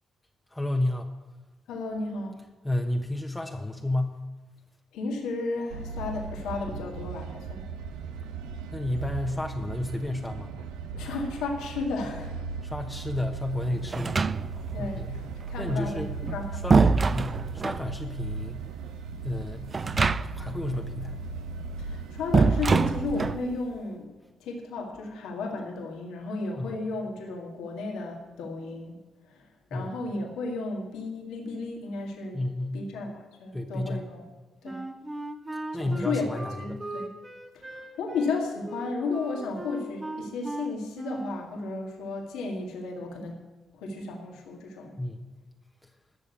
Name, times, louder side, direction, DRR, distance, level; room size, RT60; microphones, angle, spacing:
voice 1, 0.5-1.1 2.6-4.2 8.7-10.5 12.6-14.2 14.8-15.2 15.6-16.1 16.5-16.8 17.1-18.6 19.2-19.6 20.2-21.2 26.6-26.8 29.7-30.0 32.3-32.9 33.5-34.1 35.7-36.8 45.0-45.3, left 1 dB, 10° left, 3 dB, 1.2 m, -31 dB
voice 2, 1.7-2.4 4.9-7.6 11.0-12.4 14.7-15.2 15.5-16.0 16.3-16.6 21.8-24.1 24.4-29.0 29.7-32.4 32.7-34.2 34.6-34.8 35.7-37.1 37.6-43.4 43.8-44.9, left 3 dB, 80° left, 1 dB, 1.9 m, -33 dB
sound 1, 5.7-23.4, right 5 dB, 85° right, 0.8 m, -37 dB
sound 2, 13.9-14.8 16.0-17.9 19.7-20.6 20.8-20.9 22.3-23.5, right 4 dB, 40° right, 0.4 m, -24 dB
Wind instrument woodwind instrument, 34.6-41.5, right 1 dB, 20° right, 1.8 m, -38 dB
12.5 x 6.7 x 8.5 m, 1.2 s
supercardioid pair, 55°, 0 cm